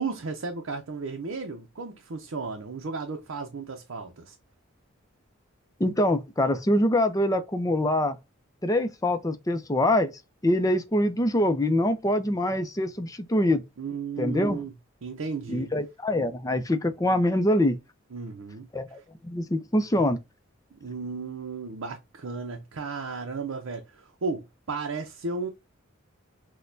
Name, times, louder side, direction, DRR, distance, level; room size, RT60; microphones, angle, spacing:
voice 1, 0.0-4.4 13.8-14.7 15.0-15.7 18.1-18.7 20.7-25.5, right 4 dB, 75° right, 0.6 m, -34 dB
voice 2, 5.8-8.2 8.6-10.1 10.4-13.6 14.2-14.6 15.5-17.8 18.7-20.2, left 1 dB, 15° left, 0.5 m, -24 dB
6.3 x 2.2 x 2.6 m
head